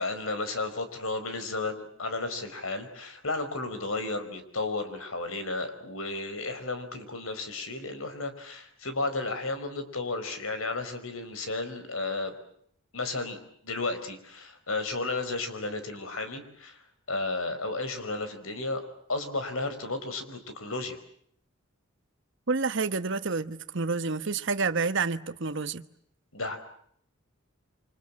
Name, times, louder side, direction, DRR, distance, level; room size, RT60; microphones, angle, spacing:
voice 1, 0.0-12.4 12.9-16.8 17.1-18.8 19.1-21.0 26.3-26.6, left 3 dB, 75° left, 5.0 m, -33 dB
voice 2, 22.5-25.9, right 4 dB, 60° right, 1.1 m, -29 dB
29.0 x 25.5 x 7.5 m
head